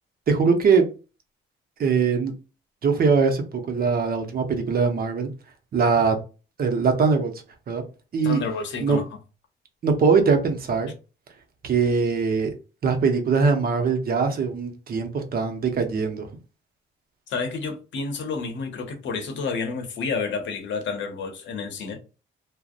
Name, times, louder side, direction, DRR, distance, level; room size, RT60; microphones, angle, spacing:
voice 1, 0.3-0.9 1.8-2.3 2.8-5.3 5.7-6.2 6.6-7.3 7.7-7.8 8.1-8.4 8.8-9.0 9.8-10.9 11.6-12.5 12.8-16.3, right 5 dB, 50° right, 0.7 m, -21 dB
voice 2, 8.2-9.2 17.3-22.0, left 4 dB, 70° left, 0.7 m, -30 dB
2.5 x 2.0 x 2.4 m
cardioid pair, 90°, 20 cm